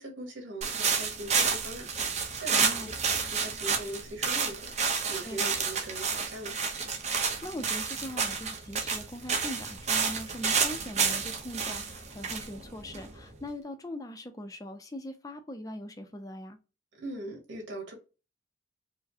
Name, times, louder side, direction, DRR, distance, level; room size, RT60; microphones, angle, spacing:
voice 1, 0.0-6.6 16.9-17.9, right 1 dB, 75° right, 1.8 m, -41 dB
sound 1, 0.6-13.4, right 5 dB, 35° right, 0.7 m, -30 dB
voice 2, 2.5-2.9 5.2-5.5 7.2-16.6, left 1 dB, 20° left, 0.5 m, -41 dB
4.7 x 2.1 x 2.7 m
head